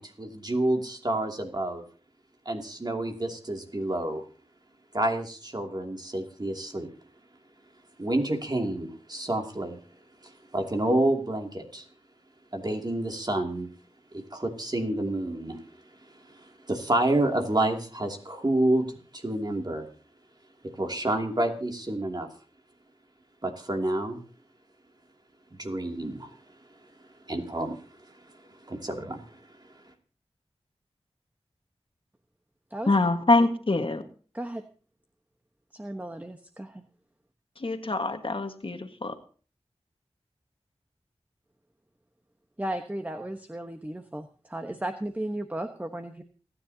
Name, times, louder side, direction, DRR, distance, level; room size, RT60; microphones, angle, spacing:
voice 1, 0.0-1.8 2.4-4.2 4.9-6.9 8.0-9.8 10.2-11.9 12.5-13.7 14.1-15.6 16.1-18.9 19.1-19.9 20.8-22.3 23.4-24.2 25.6-26.4 27.3-28.2 28.6-29.4, right 1 dB, 40° right, 3 dB, 2.7 m, -29 dB
voice 2, 32.9-34.0 37.6-39.1, left 2 dB, 55° left, 7 dB, 1.6 m, -24 dB
voice 3, 35.7-36.8 42.6-46.2, right 1 dB, 15° right, 6 dB, 1.2 m, -35 dB
28.5 x 10.0 x 2.8 m, 0.40 s
wide cardioid pair, 45°, 11 cm